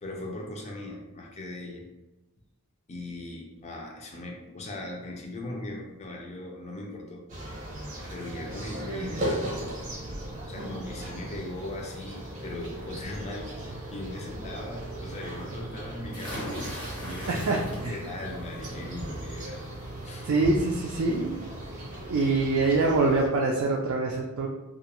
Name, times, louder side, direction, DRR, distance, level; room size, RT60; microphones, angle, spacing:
voice 1, 0.0-1.8 2.9-7.2 8.1-9.5 10.5-16.6 17.0-19.6 20.0-20.3, left 1 dB, 30° left, -1 dB, 0.5 m, -39 dB
sound 1, 7.3-23.3, right 1 dB, 35° right, 0.7 m, -37 dB
sound 2, 16.1-18.2 18.6-19.0 20.4-20.5 20.9-21.0, equal, 85° left, 1.1 m, -39 dB
voice 2, 17.3-18.0 20.3-21.4 22.1-24.5, right 3 dB, 65° right, -1 dB, 0.3 m, -25 dB
2.3 x 2.1 x 2.9 m, 1.0 s
head